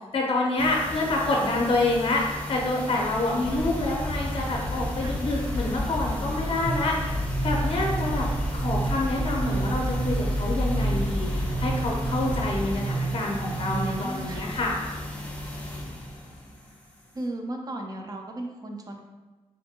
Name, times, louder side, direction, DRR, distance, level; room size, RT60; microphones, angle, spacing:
voice 1, 0.1-2.2 2.5-6.9 7.4-8.3 8.5-14.7, left 2 dB, 55° left, -1 dB, 0.5 m, -27 dB
sound 1, 0.6-17.3, left 1 dB, 10° left, 0.6 m, -36 dB
sound 2, 3.4-12.8, left 1 dB, 55° right, 1.3 m, -30 dB
sound 3, 6.6-14.2, right 4 dB, 80° right, 1.1 m, -32 dB
voice 2, 13.5-14.5 17.1-19.0, right 1 dB, 35° right, 2 dB, 0.4 m, -36 dB
2.6 x 2.5 x 2.7 m, 1.2 s
cardioid pair, 75°, 11 cm